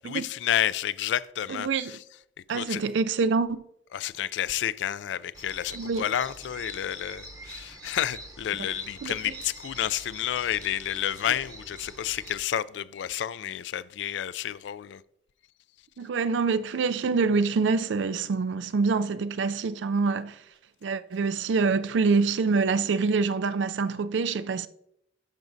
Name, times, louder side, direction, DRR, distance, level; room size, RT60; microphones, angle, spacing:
voice 1, 0.0-2.0 2.5-2.8 3.9-15.0, left 10 dB, 80° left, 0.3 m, -30 dB
voice 2, 1.5-1.9 2.5-3.6 5.7-6.0 9.0-9.1 16.0-20.4 20.8-24.7, right 4 dB, 90° right, 0.4 m, -25 dB
sound 1, 5.3-12.3, right 2 dB, 20° right, 0.8 m, -45 dB
10.5 x 6.2 x 2.6 m
head